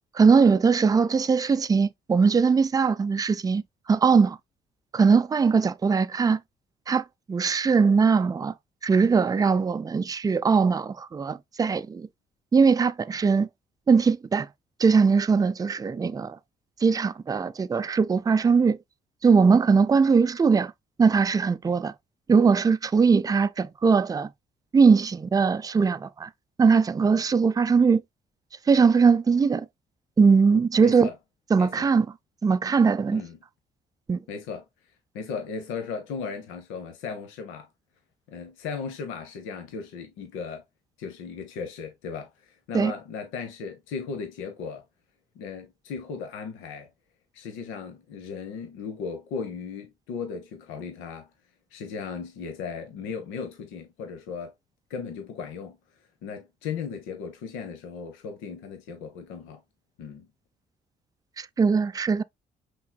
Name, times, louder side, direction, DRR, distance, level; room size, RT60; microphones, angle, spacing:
voice 1, 0.1-3.6 3.9-4.4 4.9-6.4 6.9-8.5 8.8-12.1 12.5-13.5 13.9-14.5 14.8-16.4 16.8-18.8 19.2-20.7 21.0-21.9 22.3-24.3 24.7-26.3 26.6-28.0 28.7-29.7 30.2-31.1 31.5-32.1 32.4-33.2 34.1-34.2 42.7-42.9 61.4-62.2, right 5 dB, 20° right, 0.4 m, -20 dB
voice 2, 30.8-31.1 31.6-31.9 33.1-33.4 34.3-34.6 35.1-37.7 38.3-40.6 41.0-44.8 45.4-46.9 47.3-51.3 51.7-54.5 54.9-55.8 56.2-59.6 60.0-60.3, left 5 dB, 80° left, 0.9 m, -36 dB
5.7 x 3.7 x 2.2 m
hypercardioid pair, 50°, 20 cm